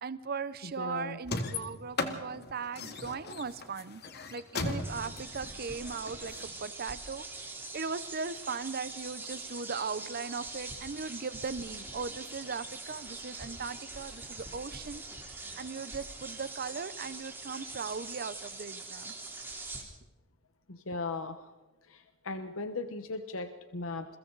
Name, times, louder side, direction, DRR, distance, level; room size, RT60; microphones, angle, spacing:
voice 1, 0.0-4.0 4.3-7.2 7.7-15.0 15.6-19.1, right 5 dB, 45° right, 14 dB, 0.7 m, -38 dB
voice 2, 0.6-1.2 20.7-21.5 21.9-24.2, left 3 dB, 75° left, 9 dB, 1.1 m, -38 dB
sound 1, 1.2-6.4, left 3 dB, 50° left, 2.1 m, -37 dB
sound 2, 4.8-19.8, right 3 dB, 10° right, 3.4 m, -43 dB
29.0 x 23.0 x 4.0 m, 1.2 s
head